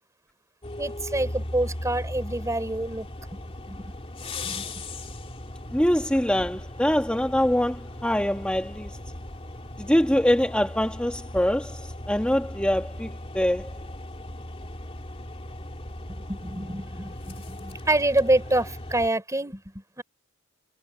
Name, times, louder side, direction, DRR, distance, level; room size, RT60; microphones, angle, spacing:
sound 1, 0.6-19.1, left 1 dB, 30° left, 2.8 m, -38 dB
voice 1, 0.8-3.1 3.7-3.9 4.4-4.8 16.1-20.0, right 1 dB, 15° right, 3.6 m, -27 dB
voice 2, 5.7-8.9 9.8-13.7, equal, 5° left, 1.5 m, -24 dB
head